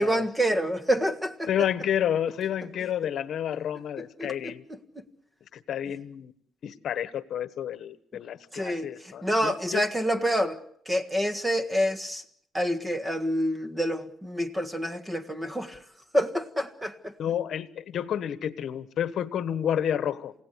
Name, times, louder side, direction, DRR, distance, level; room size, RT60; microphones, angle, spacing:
voice 1, 0.0-1.5 4.2-4.5 4.9-5.0 8.5-10.6 10.8-12.2 12.5-15.8 16.1-17.1, equal, 10° right, 1.6 m, -27 dB
voice 2, 1.5-4.6 5.5-6.3 6.6-9.8 17.2-20.3, left 9 dB, 55° left, 1.2 m, -30 dB
28.5 x 17.0 x 8.1 m
cardioid pair, 135°, 0 cm